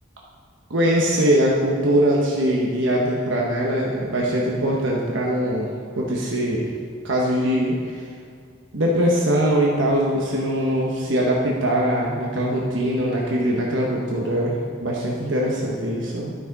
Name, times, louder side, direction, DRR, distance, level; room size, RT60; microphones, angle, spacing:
voice 1, 0.7-5.7 6.0-6.7 7.0-8.1 8.7-16.4, equal, 70° right, -3 dB, 1.1 m, -22 dB
12.5 x 5.9 x 4.0 m, 2.2 s
head